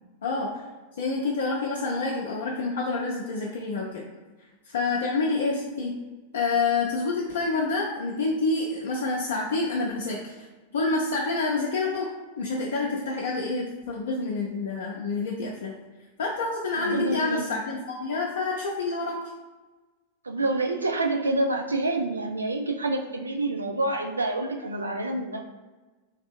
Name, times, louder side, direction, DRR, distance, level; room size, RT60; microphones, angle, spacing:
voice 1, 1.0-4.0 4.7-5.9 6.3-10.3 10.7-12.1 12.4-15.7 16.2-19.2, left 3 dB, 60° left, -3 dB, 0.5 m, -28 dB
voice 2, 16.7-17.5 20.2-25.4, right 2 dB, 80° right, 3 dB, 0.4 m, -27 dB
4.0 x 2.6 x 2.2 m, 1.2 s
figure-of-eight pair, 90°, 0 cm